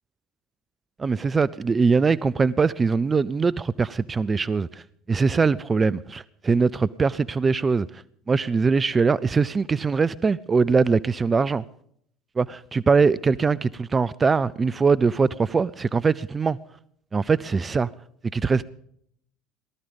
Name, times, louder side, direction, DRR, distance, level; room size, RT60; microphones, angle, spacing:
voice 1, 1.0-4.8 5.1-8.0 8.3-11.6 12.4-16.6 17.1-17.9 18.3-18.7, right 5 dB, 25° right, 0.5 m, -22 dB
18.5 x 12.5 x 5.2 m
hypercardioid pair, 70°, 0 cm